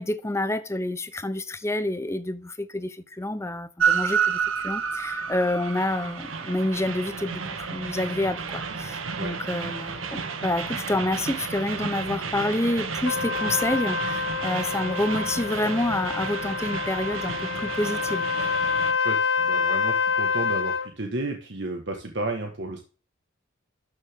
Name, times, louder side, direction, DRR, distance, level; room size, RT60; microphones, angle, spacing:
voice 1, 0.0-18.3, left 1 dB, 15° left, 0.7 m, -28 dB
Train, 3.8-18.9, right 6 dB, 85° right, 1.6 m, -31 dB
Trumpet, 13.1-20.9, left 5 dB, 65° left, 1.0 m, -27 dB
voice 2, 18.9-22.8, right 2 dB, 60° right, 1.5 m, -32 dB
12.0 x 6.7 x 3.6 m
head